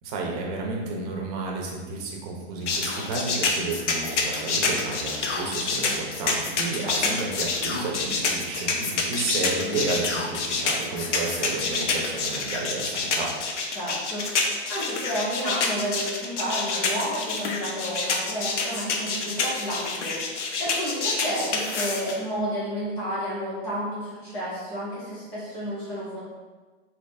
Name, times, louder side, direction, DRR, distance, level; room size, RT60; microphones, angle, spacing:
voice 1, 0.0-13.3, right 3 dB, 35° right, -1 dB, 0.8 m, -31 dB
sound 1, 2.7-22.1, left 4 dB, 75° left, 0.8 m, -27 dB
voice 2, 6.8-7.2 13.7-26.2, equal, 10° left, -9 dB, 0.3 m, -31 dB
4.1 x 2.8 x 3.3 m, 1.3 s
hypercardioid pair, 155°, 36 cm